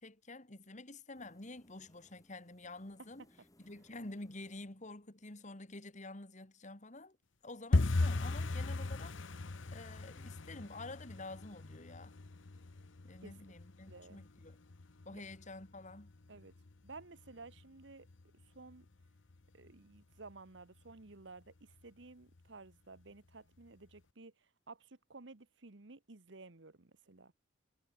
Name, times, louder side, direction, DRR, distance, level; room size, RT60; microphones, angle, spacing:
voice 1, 0.0-3.2 3.6-7.2 7.4-12.2 13.0-14.6 15.1-16.1, left 2 dB, 40° left, 2.3 m, -49 dB
sound 1, 1.1-5.7, left 1 dB, 20° left, 3.9 m, -69 dB
sound 2, 7.7-18.4 18.7-19.4 19.7-20.0 20.2-20.6 20.9-21.0 21.5-22.0 22.4-22.5 23.0-23.1, left 2 dB, 75° left, 0.9 m, -38 dB
voice 2, 13.9-14.2 15.1-15.2 16.3-16.5 16.8-18.1 18.5-18.9 19.5-27.3, right 3 dB, 65° right, 1.3 m, -54 dB
head